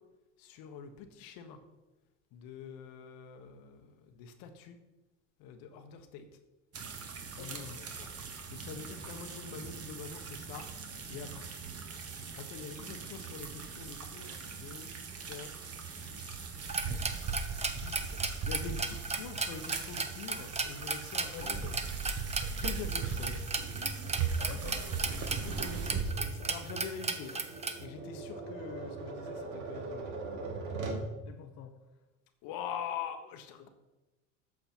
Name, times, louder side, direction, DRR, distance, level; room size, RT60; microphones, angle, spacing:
voice 1, 0.4-1.6 2.3-4.8 5.4-6.3 7.3-7.5 8.0-8.1 8.5-10.7 11.1-11.6 11.9-14.9 15.3-15.5 16.0-16.4 16.9-17.3 17.7-21.7 22.5-23.5 24.5-24.6 25.4-27.4 27.8-30.0 32.4-33.7, left 6 dB, 65° left, 7 dB, 1.2 m, -44 dB
sound 1, 6.7-26.0, right 5 dB, 40° right, 1.5 m, -39 dB
voice 2, 7.4-7.9 21.2-21.8 24.4-25.0 31.2-31.8, left 8 dB, 45° left, 4 dB, 0.8 m, -46 dB
sound 2, 16.6-27.8, right 4 dB, 15° right, 0.8 m, -36 dB
Tap, 23.6-31.1, right 3 dB, 85° right, 1.8 m, -41 dB
8.5 x 6.6 x 4.4 m, 1.1 s
supercardioid pair, 90°, 38 cm